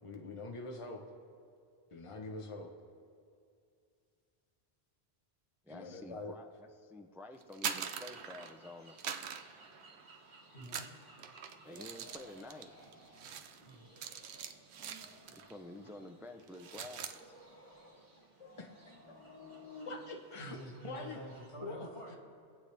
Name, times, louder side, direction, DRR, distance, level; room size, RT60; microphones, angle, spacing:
voice 1, 0.0-1.0 1.9-2.7 5.7-6.4 18.4-18.9 19.9-20.6 20.8-21.2 21.6-21.9, left 3 dB, 30° left, 2 dB, 1.0 m, -44 dB
voice 2, 5.6-9.0 11.6-12.7 15.3-17.4, left 1 dB, 5° right, 5 dB, 0.4 m, -50 dB
sound 1, 7.4-8.6 9.0-10.2 10.6-15.6 15.8-16.1 16.4-17.2, right 8 dB, 85° right, 0.9 m, -43 dB
sound 2, 7.7-21.5, right 2 dB, 50° right, 1.8 m, -62 dB
voice 3, 10.5-10.9 13.6-13.9 20.4-22.2, right 1 dB, 85° left, -3 dB, 2.8 m, -48 dB
sound 3, 11.6-13.3 13.6-14.4 14.7-16.1 16.4-18.0 18.4-19.9, left 2 dB, 15° left, 2.4 m, -56 dB
24.0 x 8.3 x 3.4 m, 2.4 s
omnidirectional pair, 1.1 m